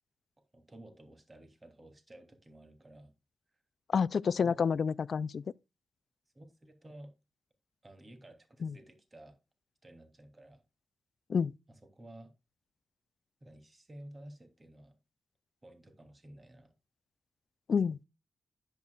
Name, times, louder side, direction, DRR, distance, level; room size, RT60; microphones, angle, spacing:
voice 1, 0.5-3.1 4.4-4.6 6.3-7.1 7.8-9.4 9.8-10.6 11.7-12.3 13.4-14.9 15.6-16.7, right 1 dB, 30° right, 2.9 m, -53 dB
voice 2, 3.9-5.4 8.6-8.7 11.3-11.5 17.7-18.0, left 6 dB, 65° left, 0.3 m, -29 dB
10.5 x 9.0 x 2.3 m
cardioid pair, 50°, 0 cm